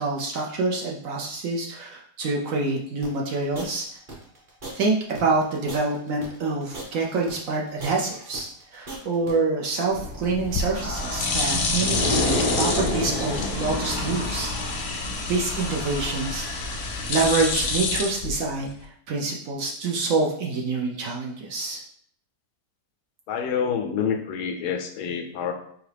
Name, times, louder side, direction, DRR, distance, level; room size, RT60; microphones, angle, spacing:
voice 1, 0.0-3.9 4.7-14.5 14.8-16.7 17.1-18.7 19.1-21.8, right 3 dB, 65° right, -1 dB, 0.9 m, -26 dB
sound 1, 3.0-9.3, right 2 dB, 35° right, 1.1 m, -40 dB
sound 2, 9.9-18.0, left 1 dB, 85° right, 2.7 m, -30 dB
sound 3, 10.4-18.8, left 4 dB, 60° left, 0.7 m, -29 dB
voice 2, 23.3-25.5, left 7 dB, 80° left, 6 dB, 1.1 m, -27 dB
4.7 x 2.8 x 3.3 m, 0.64 s
omnidirectional pair, 1.8 m